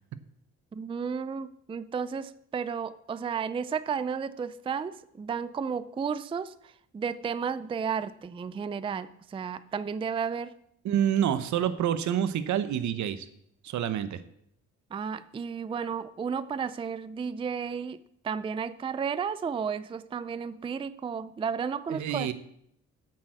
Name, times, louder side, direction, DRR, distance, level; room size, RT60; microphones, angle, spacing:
voice 1, 0.7-10.5 14.9-18.0 18.2-22.3, right 6 dB, 20° right, 15 dB, 0.4 m, -33 dB
voice 2, 10.8-13.3 13.6-14.2 21.9-22.3, right 9 dB, 70° right, 12 dB, 0.9 m, -27 dB
8.3 x 6.4 x 7.6 m, 0.73 s
cardioid pair, 90°, 30 cm